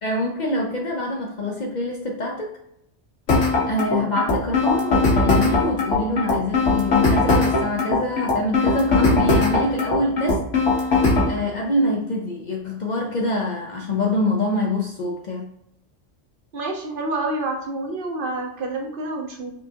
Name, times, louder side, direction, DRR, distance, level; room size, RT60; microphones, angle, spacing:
voice 1, 0.0-2.5 3.5-10.4 11.3-15.5, left 1 dB, 50° left, 0 dB, 0.6 m, -25 dB
sound 1, 3.3-11.3, left 3 dB, 80° left, 1.3 m, -19 dB
voice 2, 16.5-19.5, right 2 dB, 55° right, 2 dB, 0.7 m, -28 dB
5.4 x 2.4 x 2.7 m, 0.77 s
omnidirectional pair, 1.2 m